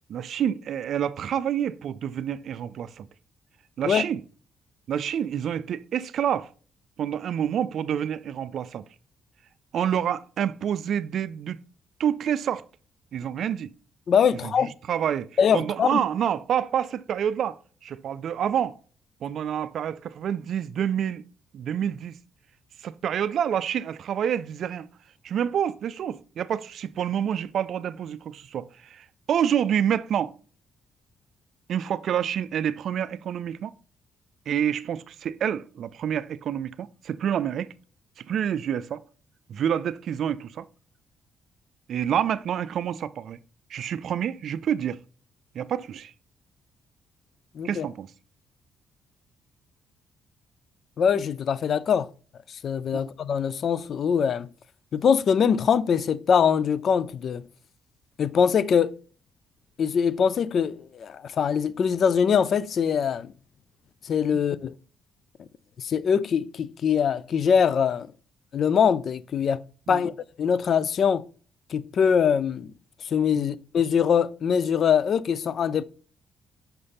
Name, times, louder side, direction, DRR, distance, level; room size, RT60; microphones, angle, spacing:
voice 1, 0.1-3.1 3.8-4.2 4.9-6.5 7.0-8.8 9.7-11.6 12.0-12.7 13.1-13.7 14.3-15.3 15.5-18.8 19.2-21.2 21.5-22.2 22.8-24.9 25.2-30.3 31.7-33.7 34.5-37.7 38.2-39.0 39.5-40.7 41.9-43.4 43.7-45.0 45.5-46.1 47.6-48.1 52.9-53.0 64.3-64.4 69.9-70.1 73.4-73.6, right 9 dB, 65° right, 0.3 m, -28 dB
voice 2, 14.1-14.7 15.4-16.0 47.6-47.8 51.0-52.1 52.6-54.5 54.9-57.4 58.2-59.0 59.8-63.3 64.0-64.7 65.8-68.1 68.5-69.6 69.9-70.1 70.4-71.2 71.7-72.7 73.0-75.8, left 7 dB, 55° left, 0.3 m, -23 dB
5.7 x 5.4 x 3.4 m
cardioid pair, 90°, 0 cm